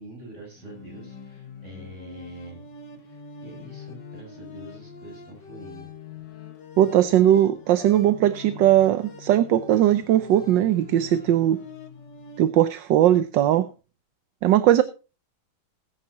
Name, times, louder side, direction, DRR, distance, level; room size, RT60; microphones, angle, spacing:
voice 1, 0.0-2.6 3.1-5.9, right 1 dB, 30° right, 7.5 m, -44 dB
sound 1, 0.6-12.4, left 5 dB, 55° left, 2.2 m, -43 dB
voice 2, 6.8-11.6 12.4-13.7 14.4-14.8, right 12 dB, 65° right, 1.3 m, -19 dB
20.0 x 9.1 x 2.9 m
omnidirectional pair, 2.3 m